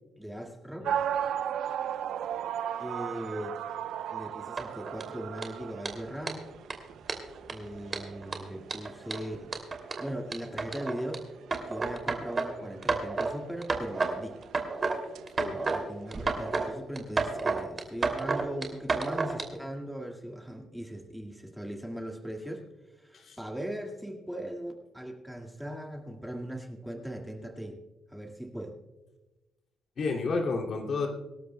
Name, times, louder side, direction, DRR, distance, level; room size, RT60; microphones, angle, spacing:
voice 1, 0.2-0.9 2.8-3.6 4.1-6.5 7.5-9.6 10.0-11.2 11.7-14.4 15.4-22.7 23.0-27.8 28.1-28.8, right 1 dB, ahead, 1 dB, 2.0 m, -39 dB
sound 1, 0.8-16.7, right 9 dB, 75° right, 0.5 m, -38 dB
sound 2, 4.6-5.0 5.4-5.5 5.8-5.9 6.3-6.4 6.7-6.8 7.1-7.5 7.9-11.2 11.5-12.5 12.8-13.3 13.6-14.1 14.4-15.0 15.3-15.8 16.1-16.7 17.0-19.4, right 4 dB, 35° right, 2.7 m, -30 dB
voice 2, 30.0-31.1, left 4 dB, 55° left, 1 dB, 2.6 m, -31 dB
25.0 x 12.5 x 2.2 m, 1.1 s
cardioid pair, 90°, 0 cm